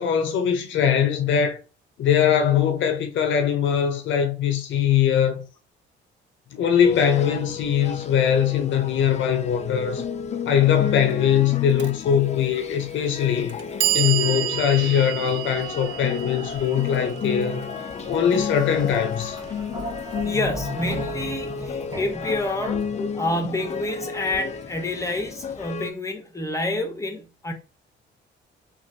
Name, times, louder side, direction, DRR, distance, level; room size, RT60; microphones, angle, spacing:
voice 1, 0.0-1.6 2.0-5.5 6.5-10.0 10.5-13.6 13.9-17.7 18.1-19.4, left 8 dB, 75° left, 0.7 m, -21 dB
sound 1, 6.8-25.9, left 6 dB, 35° left, 0.4 m, -32 dB
Clock, 11.8-11.9 12.9-13.0 13.5-19.5, right 13 dB, 70° right, 0.4 m, -30 dB
sound 2, 16.5-23.3, right 2 dB, 20° right, 1.2 m, -38 dB
voice 2, 20.2-22.8 23.1-27.5, left 1 dB, 15° left, 0.8 m, -28 dB
3.2 x 2.5 x 2.6 m
cardioid pair, 90°, 20 cm